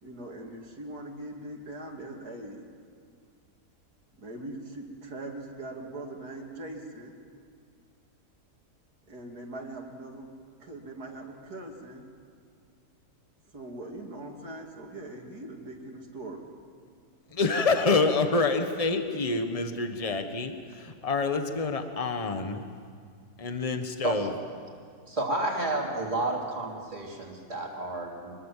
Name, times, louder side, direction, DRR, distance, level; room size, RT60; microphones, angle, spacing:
voice 1, 0.0-2.7 4.1-7.1 9.1-10.3 10.6-12.0 13.5-16.4, right 2 dB, 65° right, 1 dB, 3.1 m, -41 dB
voice 2, 17.3-22.6 23.4-24.3, left 3 dB, 25° left, 6 dB, 1.3 m, -27 dB
voice 3, 25.1-28.4, right 2 dB, 20° right, -2 dB, 3.4 m, -31 dB
24.0 x 21.5 x 7.5 m, 2.2 s
omnidirectional pair, 1.8 m